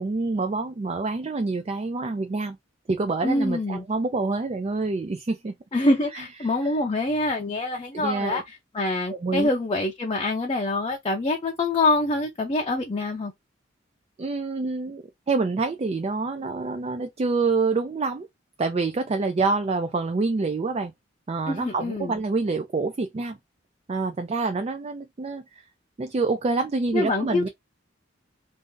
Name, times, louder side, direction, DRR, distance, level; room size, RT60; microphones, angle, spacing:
voice 1, 0.0-2.6 2.9-5.5 6.1-6.7 7.9-8.4 9.1-9.5 14.2-18.3 18.6-20.9 21.3-23.4 23.9-25.6 26.0-27.5, right 3 dB, 35° right, 0.4 m, -27 dB
voice 2, 3.2-3.9 5.7-13.3 21.5-22.2 26.9-27.5, left 2 dB, 30° left, 0.5 m, -25 dB
2.6 x 2.5 x 3.6 m
head